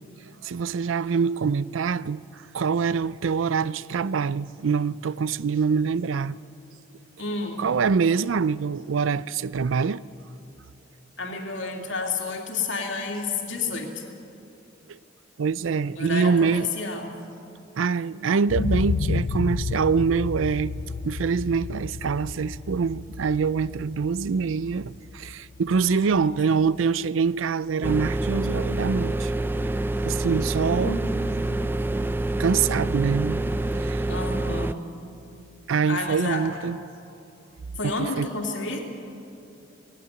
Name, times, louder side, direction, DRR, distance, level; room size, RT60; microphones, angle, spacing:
voice 1, 0.4-6.4 7.6-10.0 14.9-15.0 15.4-16.7 17.8-20.7 21.0-29.3 30.0-31.0 32.4-33.4 33.7-34.1 35.7-36.8 37.8-38.3, right 5 dB, 90° right, 0.4 m, -25 dB
voice 2, 7.2-7.6 11.2-14.0 16.0-17.1 25.8-26.4 30.6-31.2 34.1-34.7 35.9-36.5 37.8-38.8, left 3 dB, 75° left, 2.7 m, -30 dB
sound 1, 18.5-26.4 26.8-26.9, left 4 dB, 55° left, 0.4 m, -31 dB
sound 2, 27.8-34.7, right 2 dB, 10° right, 0.4 m, -27 dB
18.5 x 17.0 x 9.3 m
head